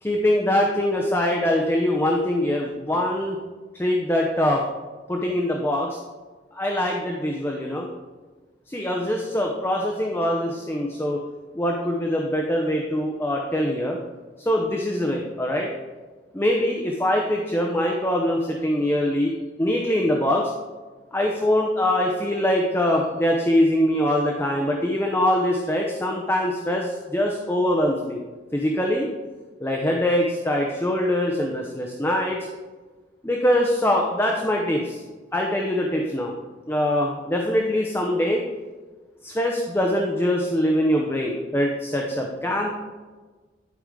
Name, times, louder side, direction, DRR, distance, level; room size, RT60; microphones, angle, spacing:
voice 1, 0.0-3.4 3.7-4.6 5.1-6.0 6.5-7.9 8.7-11.2 11.5-14.0 14.4-15.7 16.3-20.5 21.1-28.2 28.5-29.1 29.6-32.4 33.2-35.0 35.3-36.3 36.7-38.4 39.2-42.7, left 1 dB, 15° left, 0 dB, 0.7 m, -23 dB
11.5 x 5.0 x 3.7 m, 1.3 s
head